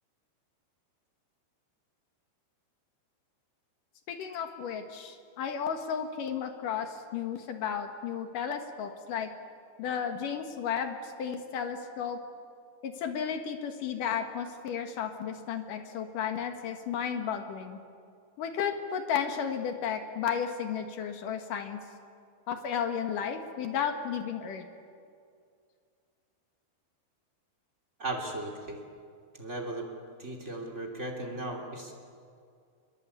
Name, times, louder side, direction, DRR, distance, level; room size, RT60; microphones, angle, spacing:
voice 1, 4.1-9.3 9.8-12.2 12.8-17.8 18.4-21.8 22.5-24.7, left 7 dB, 60° left, 6 dB, 2.3 m, -33 dB
voice 2, 28.0-28.8 29.4-29.9 30.2-31.9, right 2 dB, 20° right, 0 dB, 1.9 m, -36 dB
26.5 x 22.0 x 8.5 m, 2.3 s
omnidirectional pair, 5.6 m